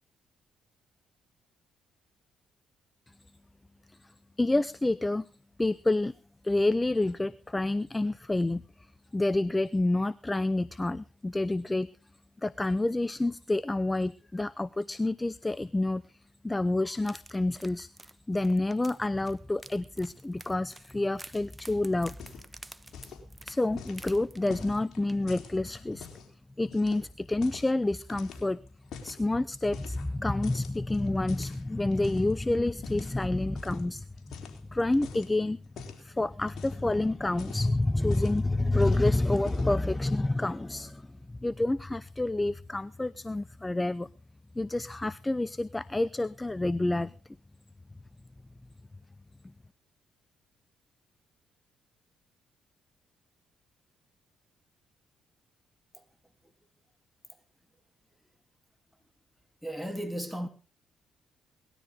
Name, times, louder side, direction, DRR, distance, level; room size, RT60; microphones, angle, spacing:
voice 1, 4.4-5.3 5.6-6.1 6.4-8.6 9.1-11.9 12.4-16.0 16.4-17.9 18.3-22.2 23.4-26.1 26.6-28.6 29.0-34.0 34.7-35.6 36.0-44.1 44.5-47.1, left 2 dB, 15° left, 0.7 m, -28 dB
sound 1, 17.0-24.8 25.1-25.3 25.7-25.8, right 2 dB, 15° right, 1.2 m, -50 dB
sound 2, 22.0-22.6 22.9-23.3 23.8-26.3 26.7-27.7 28.1-29.2 29.7-30.2 30.4-32.3 32.8-33.1 33.6-33.8 34.2-35.3 35.8-36.1 36.4-36.9 37.3-38.5 38.8-39.1 39.4-39.8, left 6 dB, 65° left, 3.8 m, -46 dB
voice 2, 59.6-60.5, equal, ahead, 3.2 m, -35 dB
19.5 x 13.0 x 3.7 m
supercardioid pair, 60°, 0 cm